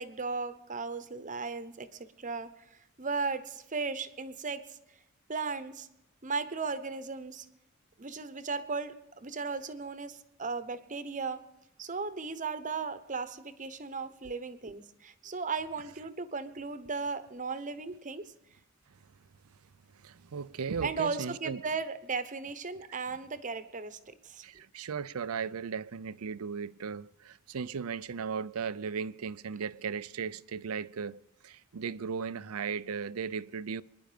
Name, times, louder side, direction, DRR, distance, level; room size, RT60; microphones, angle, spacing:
voice 1, 0.0-4.8 5.3-5.9 6.2-7.5 8.0-11.4 11.8-18.3 20.8-24.4, right 4 dB, 35° right, 1.0 m, -36 dB
voice 2, 20.0-21.6 24.4-33.8, right 6 dB, 80° right, 0.5 m, -36 dB
26.0 x 10.5 x 5.1 m
head